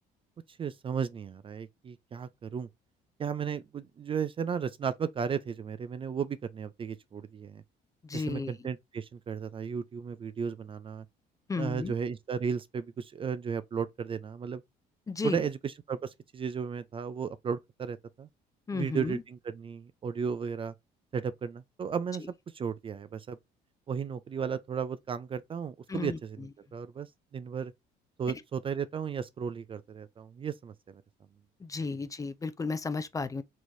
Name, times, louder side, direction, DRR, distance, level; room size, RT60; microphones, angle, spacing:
voice 1, 0.5-2.7 3.2-7.6 8.1-11.1 11.6-14.6 15.2-18.3 18.7-20.7 21.1-22.3 22.5-23.4 23.9-27.7 28.2-31.0, right 6 dB, 30° right, 0.4 m, -35 dB
voice 2, 8.0-8.7 11.5-11.9 15.1-15.4 18.7-19.2 25.9-26.5 28.3-28.4 31.6-33.4, left 4 dB, 20° left, 0.5 m, -34 dB
4.5 x 3.1 x 2.6 m
cardioid pair, 110°, 17 cm